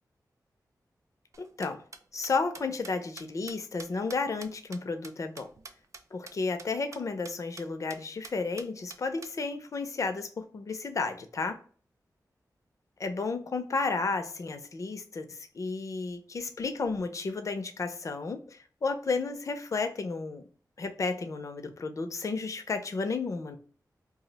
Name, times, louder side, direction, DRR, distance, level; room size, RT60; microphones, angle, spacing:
sound 1, 1.3-6.0 6.3-6.4 6.6-6.7 6.9-7.0 7.2-7.6 7.9-8.0 8.2-9.3, right 4 dB, 45° right, 0.3 m, -46 dB
voice 1, 1.4-1.8 2.1-5.5 6.1-11.6 13.0-20.4 20.8-23.6, left 4 dB, 50° left, 0.4 m, -32 dB
2.4 x 2.0 x 3.8 m
wide cardioid pair, 130°, 7 cm